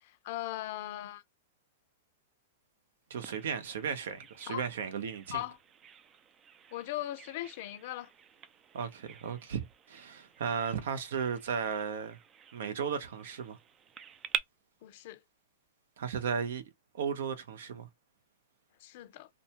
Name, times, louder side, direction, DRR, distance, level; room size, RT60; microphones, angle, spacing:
voice 1, 0.0-1.2 4.5-4.6 5.3-5.6 6.7-8.1 14.8-15.2 18.8-19.3, left 15 dB, 55° left, 0.5 m, -39 dB
voice 2, 3.1-5.4 8.7-12.2 12.5-13.6 16.0-16.6 16.9-17.9, right 6 dB, 75° right, 0.7 m, -35 dB
Bird vocalization bird call bird song, 3.2-14.4, right 8 dB, 25° right, 0.3 m, -46 dB
2.5 x 2.2 x 2.8 m
hypercardioid pair, 135°, 0 cm